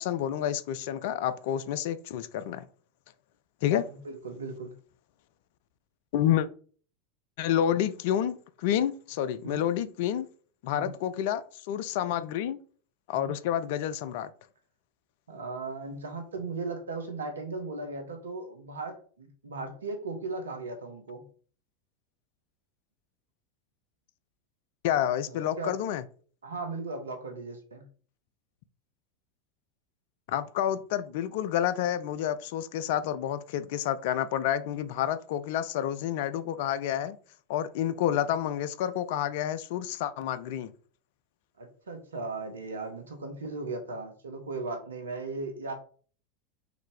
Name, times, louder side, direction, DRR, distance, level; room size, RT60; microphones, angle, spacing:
voice 1, 0.0-2.6 3.6-3.9 6.1-6.5 7.4-10.3 10.6-12.6 13.1-14.3 24.8-26.0 30.3-37.2 37.5-40.7, left 10 dB, 60° left, 0.3 m, -29 dB
voice 2, 3.9-4.7 9.4-9.7 10.7-10.9 13.1-13.3 15.3-21.3 25.3-25.8 26.4-27.8 41.6-45.7, right 3 dB, 75° right, 0.8 m, -37 dB
3.9 x 2.7 x 3.1 m
figure-of-eight pair, 85°, 0 cm